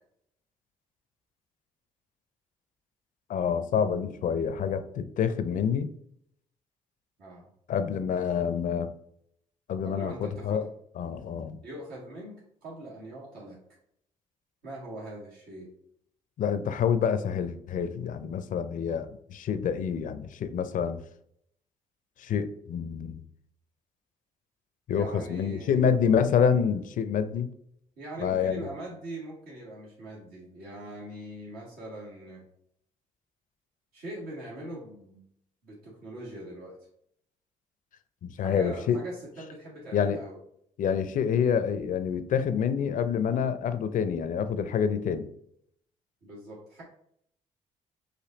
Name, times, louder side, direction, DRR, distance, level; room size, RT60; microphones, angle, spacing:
voice 1, 3.3-5.9 7.7-8.9 9.7-10.6 11.0-11.6 16.4-21.0 22.2-23.2 24.9-27.5 28.2-28.7 38.2-39.0 39.9-40.2 40.8-45.3, left 7 dB, 60° left, 11 dB, 0.5 m, -27 dB
voice 2, 7.2-7.5 9.8-10.7 11.6-13.6 14.6-15.7 24.9-25.8 28.0-32.4 33.9-35.2 35.6-36.8 38.4-40.4 46.2-46.8, right 1 dB, 75° right, -5 dB, 1.7 m, -42 dB
5.1 x 2.6 x 3.9 m, 0.71 s
supercardioid pair, 60°, 15 cm